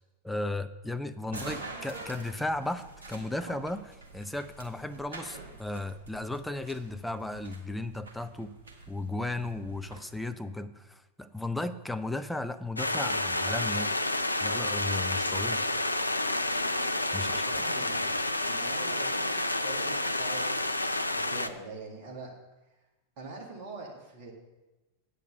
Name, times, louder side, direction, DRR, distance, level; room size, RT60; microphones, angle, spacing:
voice 1, 0.2-8.5 8.9-14.0 14.4-15.6 17.1-17.5, left 2 dB, 5° left, 9 dB, 0.5 m, -35 dB
sound 1, 1.3-10.0, right 3 dB, 70° right, 1.5 m, -46 dB
sound 2, 12.8-21.5, left 2 dB, 85° left, 0.4 m, -29 dB
voice 2, 17.1-18.2 18.4-20.8 21.1-22.3 23.2-24.3, right 3 dB, 45° right, -1 dB, 2.2 m, -43 dB
8.4 x 6.6 x 6.7 m, 1.1 s
figure-of-eight pair, 90°, 0 cm